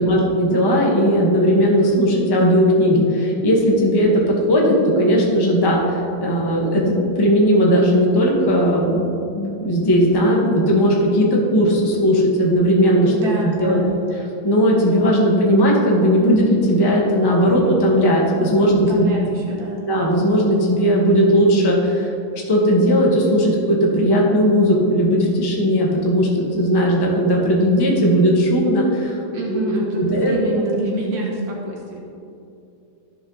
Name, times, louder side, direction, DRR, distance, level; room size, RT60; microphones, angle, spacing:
voice 1, 0.0-9.1 9.3-13.1 13.4-13.8 14.4-19.1 19.9-29.2 30.0-30.3, equal, 15° left, -3 dB, 1.0 m, -17 dB
voice 2, 13.0-14.0 18.7-19.9 29.3-32.1, right 1 dB, 70° right, -2 dB, 1.8 m, -26 dB
14.0 x 5.2 x 4.0 m, 2.7 s
omnidirectional pair, 2.2 m